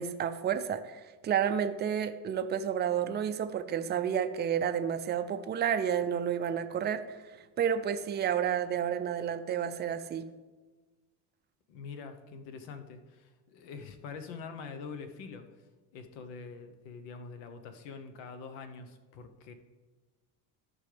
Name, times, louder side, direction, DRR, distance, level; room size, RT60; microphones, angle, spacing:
voice 1, 0.0-7.2 7.6-10.2, right 8 dB, 25° right, 9 dB, 0.4 m, -30 dB
voice 2, 11.7-15.6 15.9-19.5, left 5 dB, 80° left, 8 dB, 1.1 m, -45 dB
13.5 x 5.3 x 3.4 m, 1.3 s
cardioid pair, 125°, 45 cm